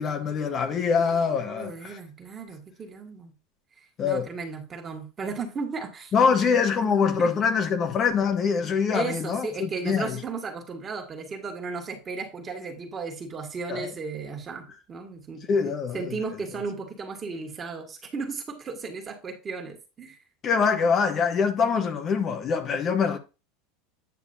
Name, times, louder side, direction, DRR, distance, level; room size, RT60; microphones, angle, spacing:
voice 1, 0.0-2.0 4.0-4.3 6.1-10.2 13.7-13.9 15.5-16.2 20.4-23.2, left 6 dB, 35° left, 1.0 m, -24 dB
voice 2, 1.5-3.3 4.0-6.5 6.8-6.9 7.2-7.3 8.9-15.4 15.9-20.2, right 4 dB, 25° right, 1.9 m, -35 dB
9.4 x 6.7 x 2.7 m
supercardioid pair, 130°, 0 cm